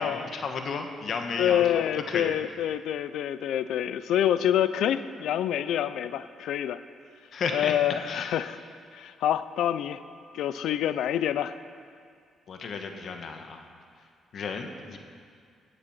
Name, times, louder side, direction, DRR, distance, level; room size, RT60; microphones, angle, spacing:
voice 1, 0.0-2.3 7.3-7.7 8.1-8.4 12.5-13.6 14.3-15.0, left 5 dB, 60° left, 5 dB, 1.4 m, -33 dB
voice 2, 1.4-6.8 7.5-8.6 8.9-10.0 10.3-11.5, left 10 dB, 80° left, 13 dB, 0.5 m, -27 dB
16.5 x 8.0 x 5.7 m, 2.2 s
cardioid pair, 90°, 0 cm